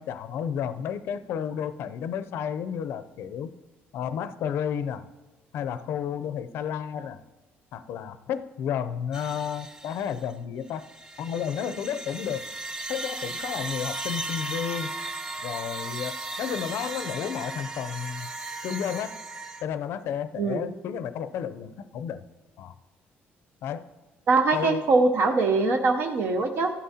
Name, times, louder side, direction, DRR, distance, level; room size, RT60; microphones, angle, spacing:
voice 1, 0.0-3.5 3.9-5.0 5.5-7.2 7.7-10.8 11.2-12.4 12.9-14.9 15.4-18.3 18.6-19.2 19.6-22.2 22.6-22.7 23.6-23.9 24.5-24.9, left 8 dB, 70° left, 13 dB, 0.5 m, -32 dB
sound 1, 9.1-10.3 10.7-19.6, right 2 dB, 15° right, 0.5 m, -36 dB
voice 2, 24.3-26.7, right 3 dB, 60° right, 4 dB, 0.7 m, -22 dB
14.5 x 11.5 x 2.8 m, 1.2 s
cardioid pair, 145°, 4 cm